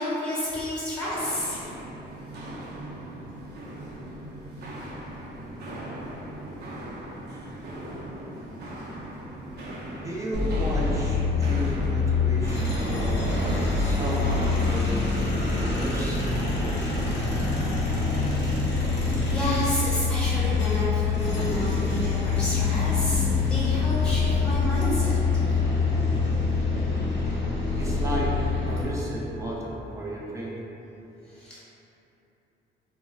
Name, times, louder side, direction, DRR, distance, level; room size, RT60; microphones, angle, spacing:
voice 1, 0.0-1.6 19.3-25.2 31.3-31.6, equal, 5° left, -9 dB, 1.0 m, -30 dB
Walk footsteps, 1.0-14.8, right 1 dB, 55° right, 0.6 m, -39 dB
voice 2, 10.0-16.3 26.6-26.7 27.8-28.4 28.7-30.6, right 1 dB, 15° right, -5 dB, 0.5 m, -34 dB
sound 1, 10.3-28.8, left 4 dB, 65° left, 0.8 m, -25 dB
2.2 x 2.1 x 3.7 m, 3.0 s
cardioid pair, 90°, 20 cm